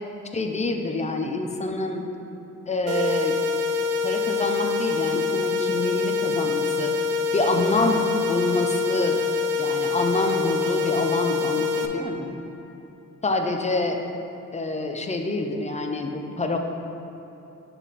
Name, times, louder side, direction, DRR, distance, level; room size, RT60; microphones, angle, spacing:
voice 1, 0.3-2.1 2.7-3.4 4.0-7.0 7.3-9.2 9.6-12.4 13.2-14.0 14.5-16.6, left 2 dB, 20° left, 4 dB, 0.4 m, -26 dB
sound 1, 2.9-11.9, left 4 dB, 50° right, 0.5 m, -25 dB
6.8 x 2.5 x 5.6 m, 3.0 s
cardioid pair, 100°, 32 cm